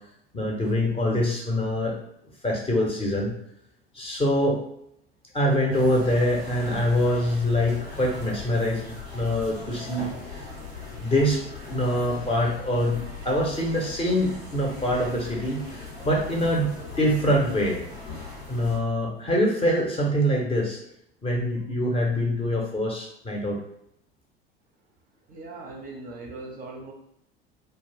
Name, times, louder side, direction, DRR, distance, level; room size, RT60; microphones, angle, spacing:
voice 1, 0.3-1.9 2.4-3.3 3.9-4.6 5.3-10.4 11.0-11.4 11.7-17.8 18.5-20.8 21.2-23.6, equal, 20° left, -1 dB, 0.7 m, -24 dB
sound 1, 5.7-18.8, left 3 dB, 90° left, 1.0 m, -39 dB
voice 2, 25.3-26.9, right 2 dB, 30° right, -1 dB, 0.6 m, -39 dB
2.3 x 2.3 x 3.2 m, 0.75 s
figure-of-eight pair, 70°, 31 cm